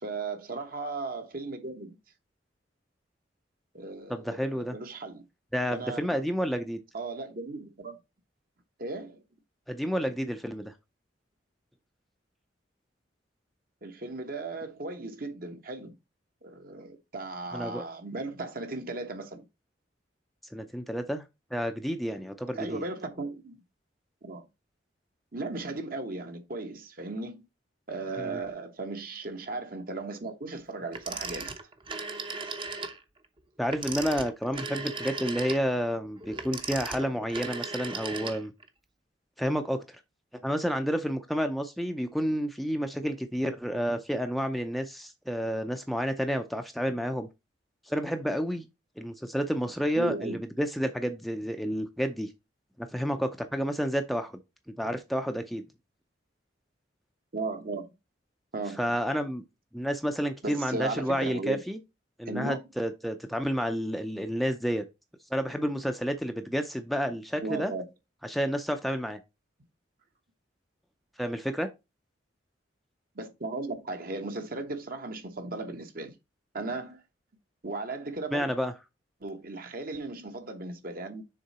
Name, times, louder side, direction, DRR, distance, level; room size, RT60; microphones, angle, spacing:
voice 1, 0.0-2.0 3.7-5.2 5.7-6.0 6.9-8.0 8.8-9.2 13.8-15.9 16.4-19.4 22.5-23.6 24.2-24.4 25.3-27.4 27.9-31.5 49.9-50.4 57.3-57.9 58.5-58.8 60.4-61.6 62.3-62.6 67.4-67.9 73.1-76.1 76.5-77.0 77.6-78.5 79.2-81.2, right 3 dB, 50° right, 1.2 m, -36 dB
voice 2, 4.1-4.8 5.5-6.8 9.7-10.7 17.5-17.8 20.5-21.2 21.5-22.8 28.2-28.4 33.6-38.5 39.4-40.0 40.4-47.3 47.9-48.7 49.0-52.3 52.8-54.4 54.8-55.6 58.8-59.4 59.7-61.8 62.2-64.8 65.3-67.7 68.2-69.2 71.2-71.7 78.3-78.7, equal, ahead, 0.5 m, -30 dB
Telephone, 30.9-33.0 33.6-38.7, right 4 dB, 30° right, 0.8 m, -37 dB
6.6 x 3.8 x 4.2 m
head